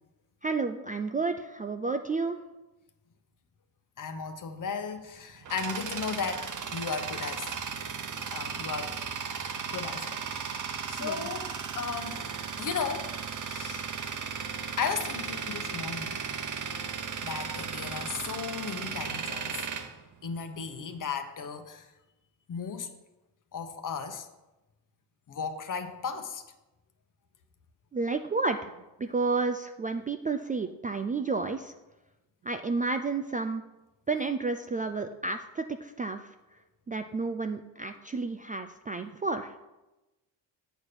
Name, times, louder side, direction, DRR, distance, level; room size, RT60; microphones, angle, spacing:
voice 1, 0.4-2.4 11.0-11.3 27.9-28.7 29.0-31.7 32.4-33.6 34.1-36.2 36.9-39.5, right 3 dB, 20° right, 7 dB, 0.3 m, -31 dB
voice 2, 4.0-7.5 8.3-9.0 9.7-10.5 10.9-12.2 12.6-13.1 13.5-13.8 14.8-16.2 17.2-19.6 20.2-21.9 22.5-22.9 23.5-24.3 25.3-26.4, left 5 dB, 45° left, 8 dB, 1.0 m, -35 dB
Tools, 5.0-20.8, right 6 dB, 45° right, 0.9 m, -36 dB
8.0 x 4.3 x 6.6 m, 1.0 s
cardioid pair, 90°, 44 cm